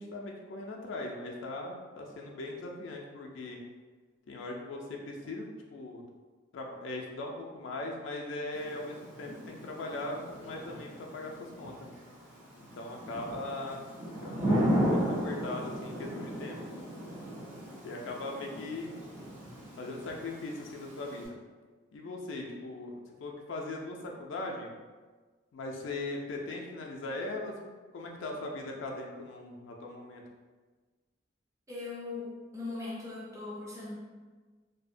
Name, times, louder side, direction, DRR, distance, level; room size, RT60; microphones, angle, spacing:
voice 1, 0.0-3.6 4.3-6.0 6.5-11.9 12.6-13.8 14.2-17.1 17.8-18.9 19.8-21.3 21.9-22.9 23.2-24.7 25.5-30.2, left 2 dB, 75° left, 0 dB, 0.3 m, -39 dB
Thunder / Rain, 8.5-21.3, equal, 80° right, 1.0 m, -35 dB
voice 2, 31.7-33.9, left 3 dB, 15° right, -6 dB, 0.4 m, -39 dB
2.6 x 2.0 x 2.5 m, 1.4 s
head